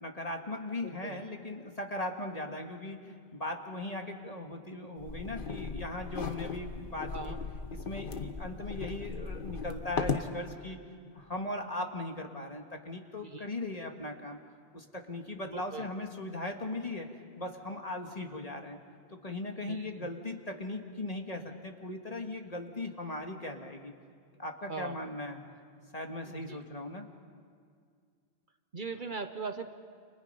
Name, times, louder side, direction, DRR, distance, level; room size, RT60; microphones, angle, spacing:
voice 1, 0.0-7.3 7.7-10.8 11.1-14.4 14.7-17.1 17.4-18.8 19.1-23.9 24.4-25.4 25.9-27.1, left 2 dB, 35° left, 3 dB, 1.9 m, -38 dB
voice 2, 0.8-1.2 7.1-7.4 13.2-13.5 15.4-15.8 19.7-20.1 24.7-25.0 26.2-26.6 28.7-29.7, right 4 dB, 50° right, 7 dB, 1.2 m, -40 dB
sound 1, 5.0-10.3, left 5 dB, 55° left, 1.3 m, -37 dB
30.0 x 28.0 x 5.6 m, 2.1 s
omnidirectional pair, 1.1 m